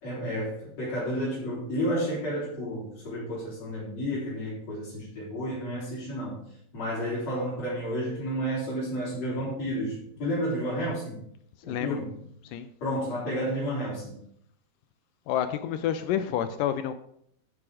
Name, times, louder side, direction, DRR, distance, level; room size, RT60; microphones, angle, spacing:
voice 1, 0.0-6.4 6.7-11.2 11.6-12.1 12.8-14.2, equal, 45° left, -9 dB, 5.2 m, -31 dB
voice 2, 11.7-12.0 12.4-12.7 15.3-16.9, left 10 dB, 80° left, 10 dB, 2.1 m, -29 dB
12.5 x 7.2 x 4.9 m, 0.70 s
omnidirectional pair, 4.3 m